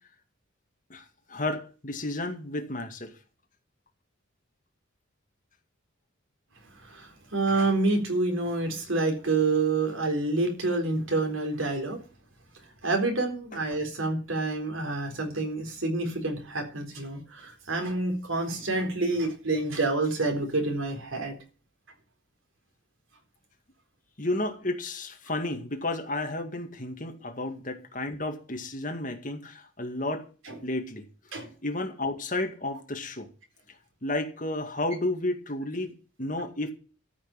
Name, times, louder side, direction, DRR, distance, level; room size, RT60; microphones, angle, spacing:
voice 1, 0.9-3.1 24.2-30.3 30.6-31.1 31.4-33.3 34.0-36.7, left 2 dB, 40° left, 2.0 m, -32 dB
voice 2, 6.8-12.0 12.8-21.4 30.5-30.6 31.3-31.5, right 3 dB, 85° right, 4.1 m, -28 dB
13.5 x 6.3 x 9.1 m
head